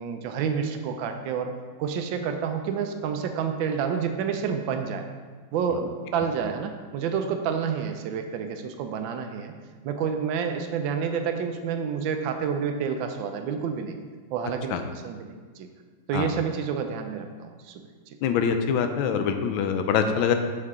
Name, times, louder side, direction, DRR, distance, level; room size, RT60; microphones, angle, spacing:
voice 1, 0.0-1.5 1.8-5.0 5.5-9.5 9.8-13.9 14.3-15.7 16.1-17.7 18.1-18.2, right 6 dB, 85° right, 5 dB, 1.4 m, -29 dB
voice 2, 18.2-20.3, left 7 dB, 90° left, 7 dB, 1.4 m, -24 dB
6.7 x 6.4 x 3.6 m, 1.5 s
omnidirectional pair, 2.1 m